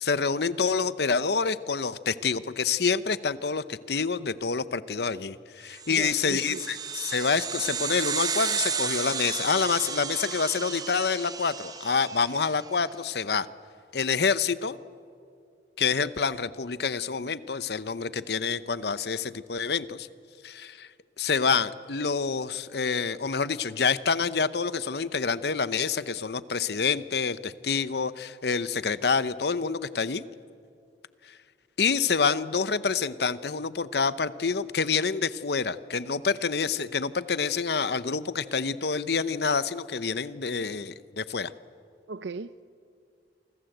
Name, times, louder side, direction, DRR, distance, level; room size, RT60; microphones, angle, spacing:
voice 1, 0.0-13.5 13.9-14.8 15.8-20.1 20.4-20.9 21.2-30.2 31.3-31.4 31.8-41.5, left 5 dB, 65° left, 15 dB, 0.8 m, -27 dB
sound 1, 5.8-12.6, right 6 dB, 20° right, 1.0 m, -33 dB
voice 2, 5.9-6.7 42.1-42.6, right 4 dB, 85° right, 15 dB, 0.6 m, -37 dB
28.0 x 24.5 x 8.0 m, 2.4 s
head